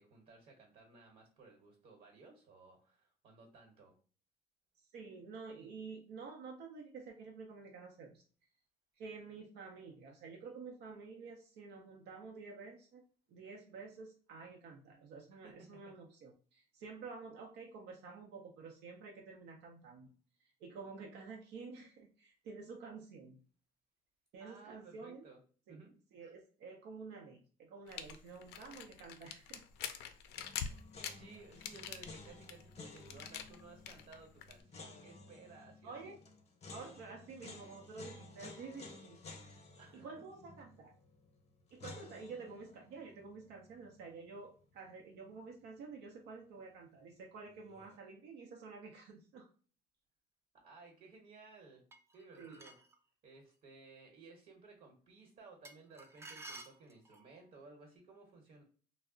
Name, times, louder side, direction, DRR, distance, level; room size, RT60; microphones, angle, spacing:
voice 1, 0.0-4.0 15.4-16.0 24.4-25.4 25.7-26.0 31.1-36.1 39.8-40.3 50.5-51.9 52.1-52.8 53.2-58.6, right 4 dB, 60° right, 1 dB, 1.0 m, -58 dB
voice 2, 4.9-8.2 9.0-13.0 13.3-20.1 20.4-23.4 24.3-25.3 25.7-25.8 26.1-29.6 35.8-36.2 36.7-39.2 39.9-40.9 41.7-49.5 52.4-52.6, right 4 dB, 85° right, 0 dB, 0.6 m, -50 dB
sound 1, 27.9-34.6, left 8 dB, 80° left, 0.4 m, -45 dB
sound 2, 30.4-45.4 45.6-45.7 47.5-48.0, left 3 dB, 40° left, 0.7 m, -55 dB
sound 3, 51.9-53.0 55.6-57.3, right 2 dB, 15° right, 0.4 m, -52 dB
2.3 x 2.0 x 3.6 m, 0.40 s
cardioid pair, 110°, 17 cm